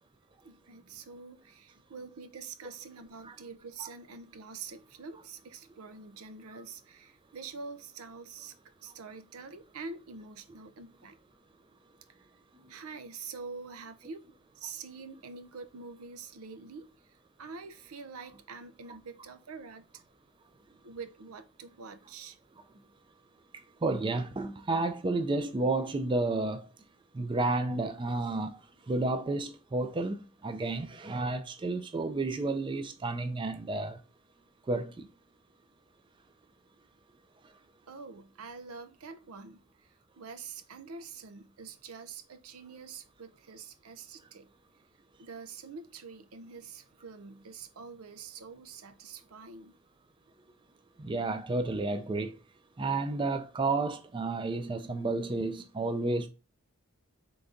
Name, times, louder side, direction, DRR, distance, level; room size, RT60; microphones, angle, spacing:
voice 1, 0.4-8.5 8.8-11.2 12.7-14.3 14.6-16.9 17.4-20.0 20.8-22.4 37.9-39.6 40.2-44.5 45.2-49.7, right 5 dB, 85° right, 0.6 m, -45 dB
voice 2, 23.8-26.7 27.1-28.6 28.9-30.2 30.4-34.0 34.7-35.1 51.0-52.3 52.8-56.3, right 2 dB, 20° right, 0.3 m, -31 dB
3.9 x 3.4 x 3.7 m
head